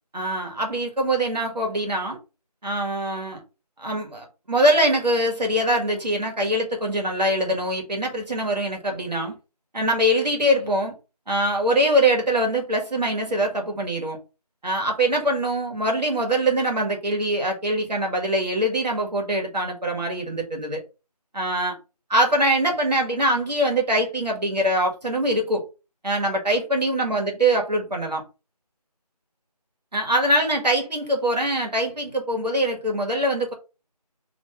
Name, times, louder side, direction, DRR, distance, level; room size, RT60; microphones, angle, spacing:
voice 1, 0.1-2.2 2.6-3.4 3.8-9.3 9.7-10.9 11.3-14.2 14.6-20.8 21.3-21.7 22.1-25.6 26.0-28.2 29.9-33.5, right 1 dB, 85° right, 1.7 m, -23 dB
3.0 x 2.7 x 4.4 m
figure-of-eight pair, 180°, 21 cm